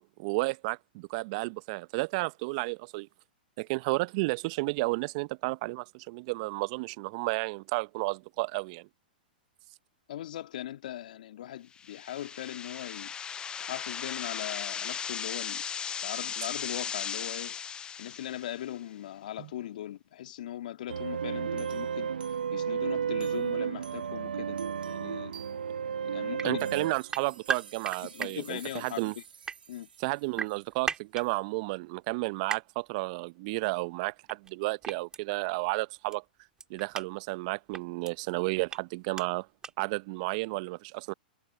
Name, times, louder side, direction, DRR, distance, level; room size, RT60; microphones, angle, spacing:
voice 1, 0.0-3.1 3.6-8.9 19.4-19.5 26.4-29.1 30.0-36.2 36.7-39.5 39.8-41.1, right 25 dB, 45° right, 0.8 m, -32 dB
voice 2, 10.1-13.1 13.6-15.6 16.0-17.6 18.0-22.1 22.5-24.6 24.8-25.3 26.0-26.7 28.0-29.2 29.7-29.9, left 12 dB, 60° left, 2.5 m, -39 dB
sound 1, 11.8-18.7, left 7 dB, 15° left, 0.4 m, -37 dB
sound 2, 20.9-29.8, right 7 dB, 75° right, 1.4 m, -34 dB
sound 3, 26.4-26.5 27.1-28.3 29.2-29.6 30.4-31.2 32.5-32.6 34.3-34.5 34.8-35.2 36.1-36.2 36.6-37.1 37.7-38.1 38.7-38.8 39.1-39.3 39.6-39.7, right 5 dB, 15° right, 2.8 m, -34 dB
hypercardioid pair, 110°, 5 cm